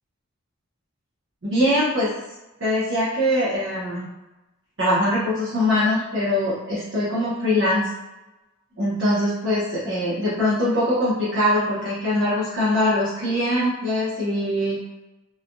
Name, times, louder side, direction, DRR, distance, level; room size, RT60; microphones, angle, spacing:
voice 1, 1.4-2.1 2.6-4.1 4.8-7.8 8.8-14.8, left 1 dB, 70° right, -10 dB, 0.9 m, -22 dB
3.3 x 2.2 x 2.5 m, 1.0 s
head